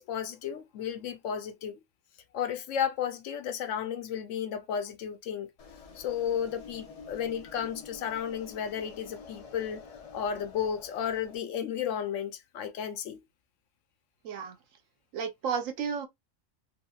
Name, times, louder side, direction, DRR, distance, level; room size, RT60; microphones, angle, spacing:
voice 1, 0.0-1.8 2.3-5.5 5.9-9.8 10.1-13.2, left 8 dB, 75° left, 0.9 m, -33 dB
sound 1, 5.6-11.4, left 5 dB, 55° left, 0.4 m, -48 dB
voice 2, 14.2-14.6 15.1-16.1, right 6 dB, 75° right, 1.1 m, -32 dB
2.8 x 2.8 x 2.2 m
omnidirectional pair, 1.4 m